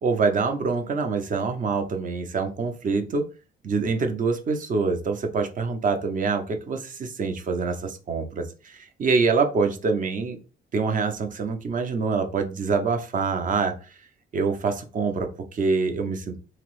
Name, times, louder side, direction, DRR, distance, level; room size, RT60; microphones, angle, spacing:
voice 1, 0.0-3.2 3.6-10.4 10.7-13.9 14.3-16.4, right 4 dB, 40° right, 6 dB, 0.6 m, -25 dB
2.8 x 2.0 x 3.0 m, 0.33 s
cardioid pair, 90°, 20 cm